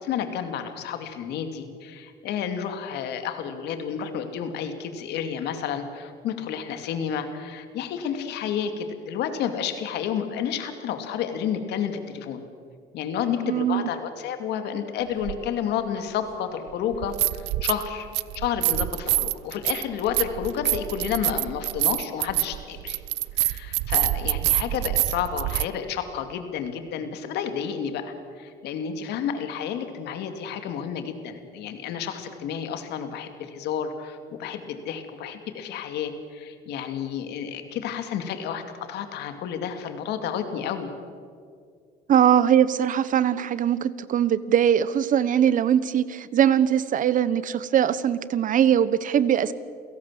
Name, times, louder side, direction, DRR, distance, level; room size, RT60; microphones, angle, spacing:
voice 1, 0.0-12.4 12.9-18.1 18.3-23.0 23.4-40.9, left 8 dB, 80° left, 8 dB, 2.4 m, -31 dB
voice 2, 13.4-13.9 42.1-49.5, right 9 dB, 50° right, 16 dB, 1.1 m, -21 dB
sound 1, 15.2-15.4 16.9-17.9 18.1-25.7, right 18 dB, 85° right, 0.6 m, -26 dB
28.5 x 17.5 x 7.5 m, 2.2 s
cardioid pair, 110°, 17 cm